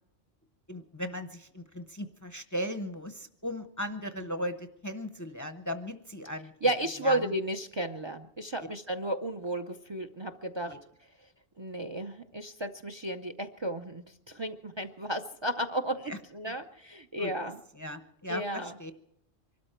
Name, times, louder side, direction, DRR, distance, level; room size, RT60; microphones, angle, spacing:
voice 1, 0.7-6.5 7.0-7.2 10.7-10.8 16.1-16.2 17.2-17.3 17.8-18.9, equal, 20° left, 9 dB, 0.7 m, -37 dB
voice 2, 6.6-10.7 11.6-17.6 18.3-18.7, right 1 dB, 30° right, 8 dB, 0.6 m, -33 dB
24.0 x 13.0 x 4.4 m, 0.80 s
omnidirectional pair, 1.1 m